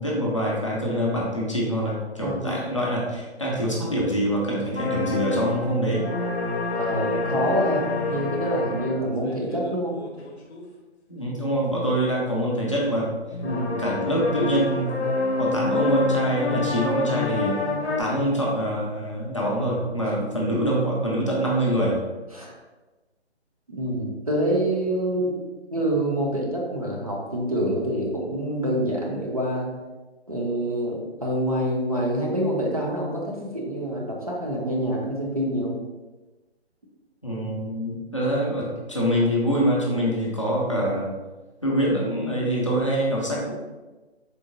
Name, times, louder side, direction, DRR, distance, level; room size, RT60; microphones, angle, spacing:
voice 1, 0.0-6.0 11.1-13.1 13.8-15.0 15.4-17.6 18.0-22.0 37.2-41.1 41.6-43.5, equal, 30° left, -5 dB, 0.4 m, -25 dB
voice 2, 2.2-2.6 6.8-10.0 13.4-13.8 22.3-22.5 23.7-25.4 25.7-29.7 30.3-35.8, right 1 dB, 35° right, -2 dB, 0.4 m, -26 dB
sound 1, 4.8-10.6 13.3-18.0, left 3 dB, 70° left, 0.6 m, -27 dB
3.8 x 2.1 x 2.5 m, 1.2 s
hypercardioid pair, 160°, 34 cm